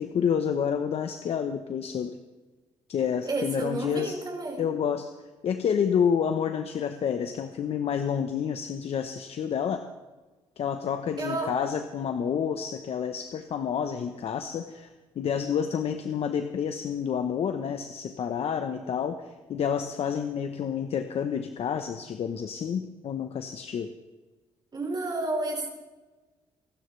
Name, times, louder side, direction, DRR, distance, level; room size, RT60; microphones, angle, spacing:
voice 1, 0.0-2.2 2.9-4.2 4.6-5.1 5.4-9.8 10.6-14.9 15.2-23.9, left 7 dB, 60° left, 7 dB, 1.0 m, -29 dB
voice 2, 3.2-4.7 11.2-11.6 24.7-25.7, right 2 dB, 40° right, 0 dB, 5.0 m, -31 dB
24.5 x 12.5 x 3.3 m, 1.2 s
supercardioid pair, 70°, 12 cm